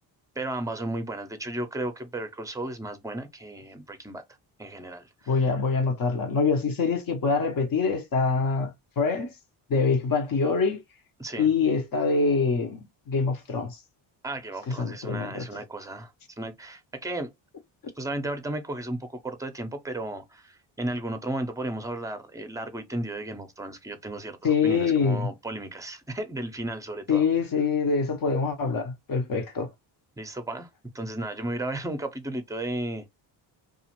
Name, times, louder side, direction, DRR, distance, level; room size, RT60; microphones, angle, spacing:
voice 1, 0.4-4.2 4.6-5.4 11.2-11.5 14.2-16.1 16.4-17.3 18.0-27.3 30.2-30.7 30.9-33.1, right 1 dB, 5° right, 0.6 m, -34 dB
voice 2, 5.3-9.3 9.7-10.8 11.4-13.8 14.7-15.6 24.4-25.3 27.1-29.7, left 5 dB, 45° left, 0.9 m, -25 dB
2.4 x 2.4 x 2.9 m
cardioid pair, 80°, 48 cm